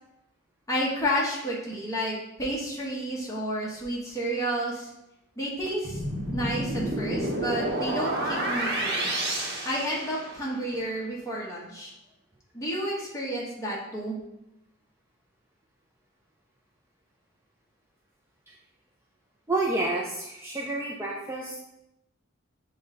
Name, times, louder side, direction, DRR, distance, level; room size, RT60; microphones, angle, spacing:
voice 1, 0.7-4.9 5.4-6.0 6.3-9.1 9.6-11.9 12.5-14.2, equal, 15° left, -4 dB, 1.0 m, -31 dB
sound 1, 5.8-10.6, right 1 dB, 50° right, 0.9 m, -30 dB
voice 2, 19.5-21.6, right 2 dB, 10° right, -3 dB, 0.4 m, -29 dB
6.5 x 2.2 x 3.7 m, 0.88 s
head